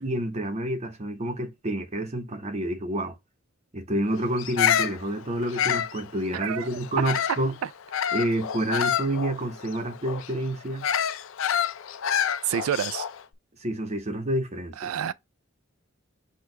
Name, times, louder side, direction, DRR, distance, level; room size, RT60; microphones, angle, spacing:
voice 1, 0.0-3.2 3.7-7.5 8.1-10.9 13.6-14.9, right 1 dB, 30° right, 0.9 m, -29 dB
Bird vocalization bird call bird song, 4.4-7.5 7.9-13.2, left 9 dB, 65° left, 0.4 m, -28 dB
voice 2, 6.3-6.8 7.6-7.7 8.0-8.2 12.4-13.1 14.8-15.1, right 9 dB, 80° right, 0.3 m, -29 dB
6.2 x 2.4 x 3.2 m
head